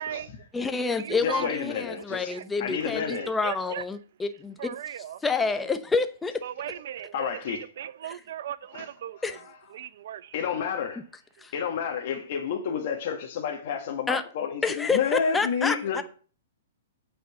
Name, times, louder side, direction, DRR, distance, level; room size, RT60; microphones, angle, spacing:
voice 1, 0.0-0.7 1.0-1.6 2.3-2.5 3.1-3.8 4.6-5.7 6.4-9.4 9.7-10.4 11.4-11.5, right 10 dB, 65° right, 0.6 m, -38 dB
voice 2, 0.5-4.6 5.2-6.4 9.2-9.4 11.4-11.5 14.1-14.2 14.6-16.0, left 4 dB, 10° left, 0.7 m, -28 dB
voice 3, 1.2-2.3 2.6-3.3 7.1-7.6 8.7-8.9 9.2-9.5 10.3-11.0 11.5-16.0, left 7 dB, 55° left, 1.5 m, -30 dB
8.5 x 4.3 x 7.0 m
hypercardioid pair, 130°, 0 cm